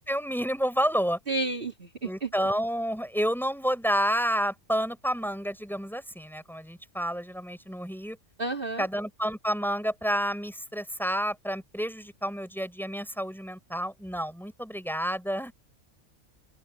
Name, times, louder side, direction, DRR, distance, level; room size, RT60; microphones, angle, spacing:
voice 1, 0.1-1.2 2.0-8.2 8.8-15.5, equal, ahead, 6.3 m, -29 dB
voice 2, 1.3-2.3 8.4-8.8, right 2 dB, 40° right, 3.2 m, -31 dB
open air
omnidirectional pair, 1.4 m